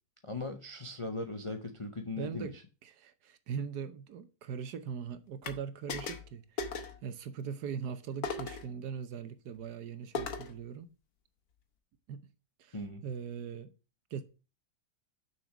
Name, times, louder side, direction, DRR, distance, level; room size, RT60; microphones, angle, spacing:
voice 1, 0.2-2.5 12.7-13.0, left 2 dB, 45° left, 0.4 m, -38 dB
voice 2, 2.2-2.6 2.8-10.9 12.1-12.3 12.6-13.7 14.1-14.2, right 7 dB, 65° right, 1.3 m, -41 dB
sound 1, 5.4-5.6 5.9-6.3 6.6-7.0 8.2-8.7 10.1-10.6, left 4 dB, 60° left, 1.5 m, -37 dB
6.7 x 6.1 x 5.9 m
omnidirectional pair, 1.9 m